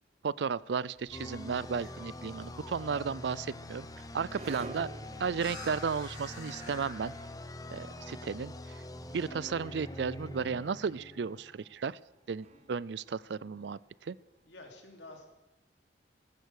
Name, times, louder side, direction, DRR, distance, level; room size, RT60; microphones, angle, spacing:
voice 1, 0.2-3.9 4.1-4.9 5.2-7.1 7.7-8.8 9.1-12.0 12.3-14.2, right 5 dB, 70° right, 21 dB, 0.4 m, -34 dB
sound 1, 0.9-7.3, left 2 dB, 45° left, 6.6 m, -51 dB
sound 2, 1.1-11.7, left 1 dB, 20° left, 0.9 m, -45 dB
sound 3, 3.1-14.2, right 2 dB, 40° right, 0.9 m, -53 dB
voice 2, 14.4-15.3, left 2 dB, 80° left, 3 dB, 3.2 m, -51 dB
15.0 x 14.5 x 6.5 m, 0.99 s
head